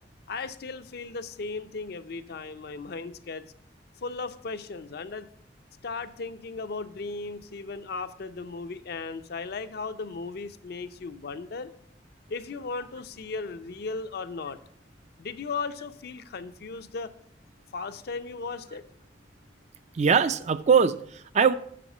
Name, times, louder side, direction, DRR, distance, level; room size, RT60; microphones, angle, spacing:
voice 1, 0.3-3.5 4.0-5.3 5.8-11.7 12.3-14.6 15.2-17.1 17.7-18.8, left 4 dB, 60° left, 0.5 m, -36 dB
voice 2, 19.9-21.5, right 6 dB, 40° right, 0.4 m, -22 dB
7.6 x 5.7 x 5.4 m
head